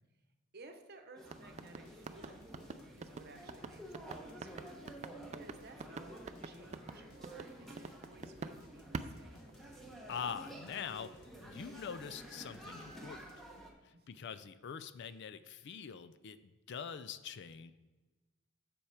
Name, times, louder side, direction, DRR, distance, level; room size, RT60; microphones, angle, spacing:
voice 1, 0.5-2.5 3.0-9.5 13.9-14.3, right 3 dB, 50° right, 6 dB, 0.9 m, -57 dB
sound 1, 1.2-13.7, right 1 dB, ahead, 1.1 m, -52 dB
sound 2, 1.2-8.6 8.9-10.0, right 4 dB, 30° right, 0.4 m, -45 dB
sound 3, 1.5-13.7, left 1 dB, 75° left, 1.3 m, -62 dB
voice 2, 10.1-13.2 13.8-17.7, left 7 dB, 55° left, 13 dB, 0.4 m, -44 dB
7.1 x 6.9 x 4.8 m, 1.2 s
head